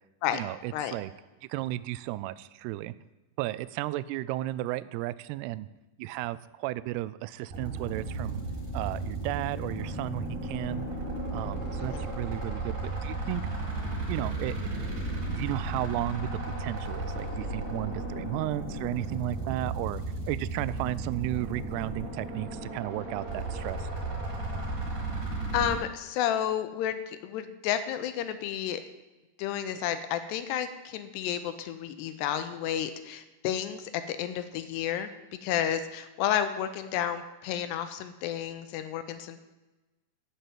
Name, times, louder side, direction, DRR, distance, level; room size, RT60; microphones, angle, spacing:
voice 1, 0.3-1.1 1.5-2.9 3.4-5.7 6.0-8.4 8.7-10.9 11.3-13.4 14.1-14.7 15.3-23.9, right 16 dB, 85° right, 16 dB, 2.3 m, -34 dB
sound 1, 7.5-25.8, right 2 dB, 45° right, 5.7 m, -34 dB
voice 2, 25.5-28.8 29.4-35.1 35.4-39.4, left 10 dB, 85° left, 10 dB, 2.6 m, -31 dB
13.5 x 5.6 x 9.1 m, 1.1 s
omnidirectional pair, 5.2 m